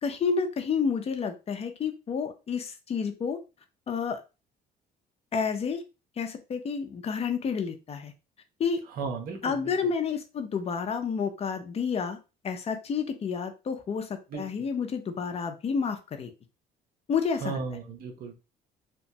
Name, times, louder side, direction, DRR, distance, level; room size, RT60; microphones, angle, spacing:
voice 1, 0.0-3.4 3.9-4.2 5.3-5.8 6.2-8.1 8.6-8.8 9.4-12.2 12.4-16.3 17.1-17.6, left 6 dB, 35° left, 7 dB, 0.5 m, -30 dB
voice 2, 8.9-9.7 14.3-14.4 17.4-18.3, right 5 dB, 60° right, 4 dB, 0.8 m, -35 dB
2.9 x 2.2 x 2.7 m, 0.29 s
cardioid pair, 110°, 17 cm